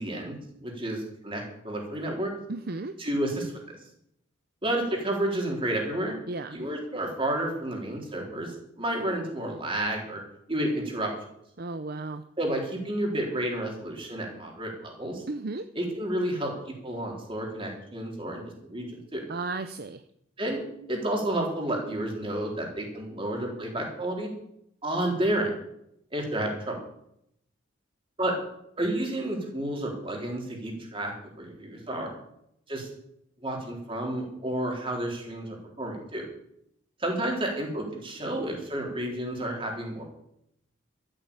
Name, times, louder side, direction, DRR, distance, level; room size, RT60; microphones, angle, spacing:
voice 1, 0.0-2.3 3.0-3.8 4.6-6.2 6.5-10.2 10.5-11.1 12.4-15.2 15.8-19.2 20.4-24.3 24.8-25.5 26.1-26.8 28.2-28.3 28.8-32.1 32.7-32.9 33.4-36.2 37.0-40.0, right 1 dB, 25° right, 0 dB, 3.9 m, -31 dB
voice 2, 2.5-2.9 6.3-6.6 11.6-12.2 15.3-15.7 19.3-20.0, right 3 dB, 45° right, 10 dB, 0.7 m, -34 dB
13.0 x 9.1 x 8.7 m, 0.76 s
head